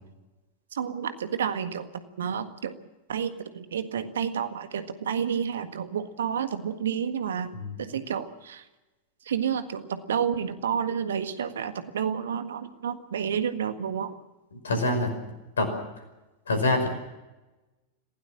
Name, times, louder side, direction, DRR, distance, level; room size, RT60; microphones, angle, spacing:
voice 1, 0.7-1.9 2.2-2.7 3.1-7.5 7.8-8.6 9.3-14.1, right 8 dB, 65° right, 9 dB, 1.7 m, -30 dB
voice 2, 14.6-15.1 15.6-15.7 16.5-16.9, left 2 dB, 70° left, 7 dB, 5.4 m, -25 dB
26.5 x 17.0 x 7.3 m, 1.1 s
figure-of-eight pair, 90°, 0 cm